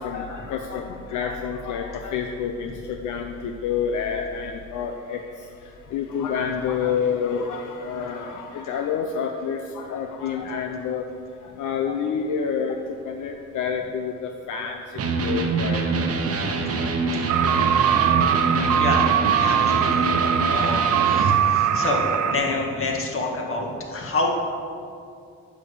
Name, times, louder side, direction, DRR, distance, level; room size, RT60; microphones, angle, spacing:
voice 1, 0.0-15.9 16.4-16.5 17.1-17.2 17.7-17.9 18.1-18.7, left 6 dB, 80° left, 4 dB, 0.6 m, -29 dB
Electric guitar, 14.9-21.4, right 3 dB, 50° right, 1.0 m, -25 dB
sound 1, 17.3-22.3, right 9 dB, 70° right, 0.5 m, -21 dB
voice 2, 18.7-24.3, left 2 dB, 45° left, 0 dB, 1.8 m, -28 dB
9.3 x 5.3 x 7.0 m, 2.4 s
cardioid pair, 90°, 30 cm